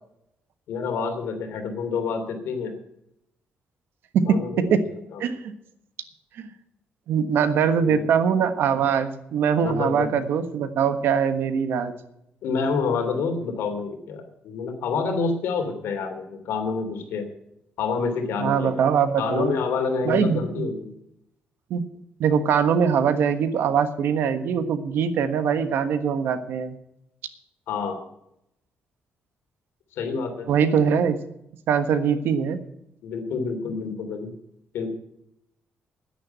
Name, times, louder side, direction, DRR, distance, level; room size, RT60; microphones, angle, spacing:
voice 1, 0.7-2.7 4.3-4.8 5.1-5.2 7.8-8.0 9.6-10.1 12.4-17.3 17.8-18.9 19.2-20.9 27.7-28.0 29.9-30.5 33.0-34.3 34.7-34.9, left 5 dB, 85° left, 5 dB, 2.9 m, -28 dB
voice 2, 4.1-4.8 5.2-5.5 7.1-11.9 18.4-19.5 20.0-20.7 21.7-21.9 22.2-26.7 30.5-31.2 31.7-32.6, right 7 dB, 75° right, 10 dB, 1.3 m, -22 dB
10.5 x 10.0 x 8.8 m, 0.80 s
cardioid pair, 150°, 4 cm